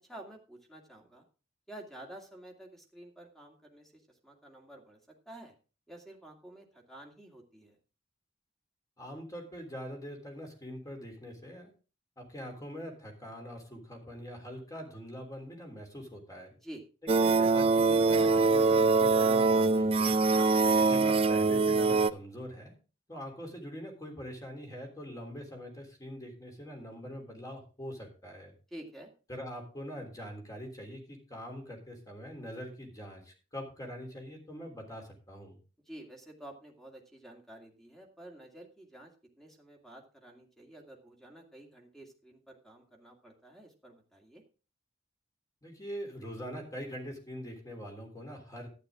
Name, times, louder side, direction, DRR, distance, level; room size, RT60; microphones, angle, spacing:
voice 1, 0.1-1.3 1.7-5.0 5.3-5.5 5.9-7.8 16.5-16.8 20.3-20.6 28.7-29.1 35.9-39.1 39.4-44.4, right 1 dB, ahead, 1 dB, 2.4 m, -50 dB
voice 2, 9.0-11.7 12.2-16.5 17.2-20.2 20.8-22.7 23.1-28.5 29.3-35.6 45.6-48.7, equal, 20° left, 2 dB, 3.4 m, -43 dB
sound 1, 17.1-22.1, right 3 dB, 30° right, 0.4 m, -24 dB
12.0 x 9.9 x 3.7 m, 0.34 s
head